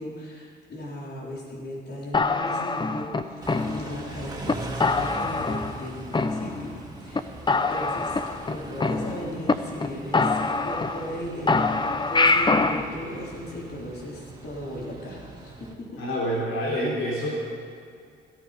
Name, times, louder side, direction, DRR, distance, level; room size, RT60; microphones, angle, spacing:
voice 1, 0.0-6.7 7.0-16.0, equal, 55° left, -4 dB, 4.3 m, -37 dB
sound 1, 2.1-4.1 4.5-4.6 4.8-5.8 6.1-6.8 7.1-7.2 7.5-9.5 9.8-9.9 10.1-11.2 11.5-12.8, left 3 dB, 25° left, 0.8 m, -24 dB
Car / Idling / Accelerating revving vroom, 3.4-15.7, right 2 dB, 20° right, 2.6 m, -41 dB
voice 2, 16.0-17.4, equal, 80° left, -4 dB, 3.7 m, -27 dB
17.5 x 14.5 x 5.2 m, 2.3 s
cardioid pair, 90°, 20 cm